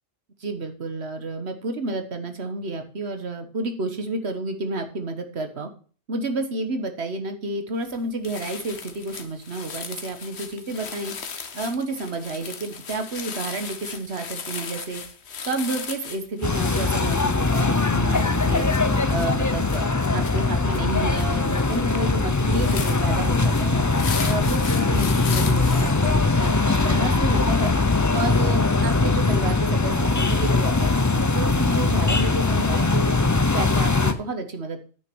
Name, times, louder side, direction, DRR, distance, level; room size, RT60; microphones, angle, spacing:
voice 1, 0.4-5.7 6.1-11.1 11.5-15.0 15.4-18.7 19.1-23.8 24.2-27.7 28.1-33.1 33.5-34.8, right 2 dB, 70° right, 7 dB, 1.6 m, -30 dB
sound 1, 7.8-8.0 8.2-25.9, left 6 dB, 70° left, 1.3 m, -37 dB
sound 2, 16.4-34.1, left 3 dB, 20° left, 0.5 m, -21 dB
9.3 x 6.2 x 6.1 m, 0.40 s
omnidirectional pair, 1.1 m